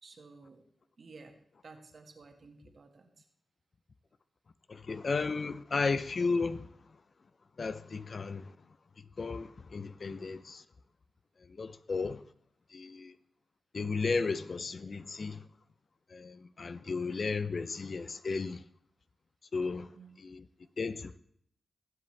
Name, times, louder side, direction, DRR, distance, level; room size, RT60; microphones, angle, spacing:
voice 1, 0.0-0.6 1.0-1.4 1.6-3.2 19.9-20.2, right 4 dB, 60° right, 1.8 m, -53 dB
voice 2, 4.7-6.7 7.6-8.5 9.2-10.6 11.6-12.2 12.7-13.1 13.7-15.4 16.1-18.6 19.5-19.9 20.2-20.4 20.8-21.2, left 4 dB, 55° left, 0.6 m, -34 dB
19.5 x 7.9 x 3.3 m
cardioid pair, 60°, 0 cm